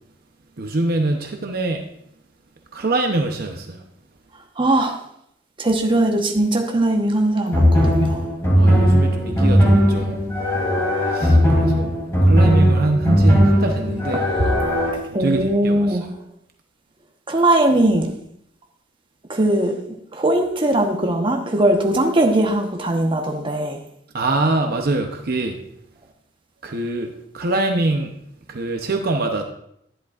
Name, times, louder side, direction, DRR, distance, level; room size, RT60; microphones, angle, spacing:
voice 1, 0.6-1.8 2.7-3.8 8.6-10.2 11.1-11.9 12.2-14.2 15.2-16.0 24.1-25.6 26.6-28.1 28.5-29.4, right 2 dB, 55° right, 3 dB, 0.8 m, -23 dB
voice 2, 4.6-5.0 5.6-8.2 11.5-11.6 14.1-14.2 15.1-16.1 17.3-18.1 19.3-19.7 20.1-23.8, right 1 dB, 30° right, 3 dB, 1.1 m, -20 dB
sound 1, 7.5-14.9, equal, 15° left, 3.0 m, -17 dB
11.0 x 10.5 x 2.5 m, 0.73 s
head